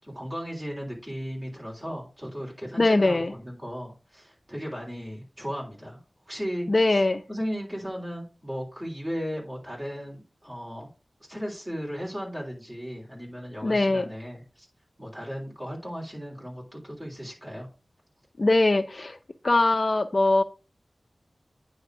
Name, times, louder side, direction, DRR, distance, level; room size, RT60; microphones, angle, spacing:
voice 1, 0.0-6.0 6.3-7.0 7.3-10.9 11.3-14.7 15.0-17.7, equal, 25° right, 3.4 m, -36 dB
voice 2, 2.8-3.3 6.7-7.2 13.6-14.1 18.4-19.2 19.4-20.4, left 2 dB, 45° left, 0.4 m, -21 dB
9.4 x 3.4 x 4.7 m
wide cardioid pair, 75°, 0 cm